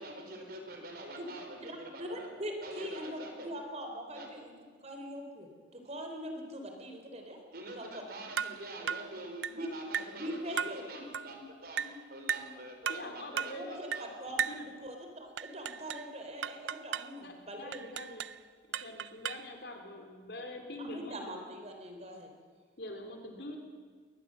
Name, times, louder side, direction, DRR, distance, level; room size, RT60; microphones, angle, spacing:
voice 1, 0.0-2.3 2.6-3.5 4.1-4.3 7.5-14.1, right 1 dB, 55° right, 3 dB, 4.4 m, -46 dB
voice 2, 1.6-4.5 4.8-7.4 7.7-8.0 9.5-9.7 10.1-11.1 13.5-13.7 14.0-17.9 20.8-22.3, equal, 35° right, 4 dB, 3.6 m, -42 dB
sound 1, 8.4-8.6 8.9-9.1 9.4-9.6 9.9-10.2 10.6-10.8 11.1-11.3 11.8-12.0 12.3-12.5 12.8-13.1 13.4-13.6 13.9-14.1 14.4-14.6 15.4-16.1 16.4-17.1 17.7-18.4 18.7-19.5, right 8 dB, 80° right, 0.6 m, -36 dB
voice 3, 12.9-14.0 14.3-14.7 17.2-18.2 18.7-21.2 22.8-23.6, left 1 dB, 60° left, 4 dB, 3.6 m, -44 dB
21.5 x 19.5 x 7.6 m, 1.5 s
head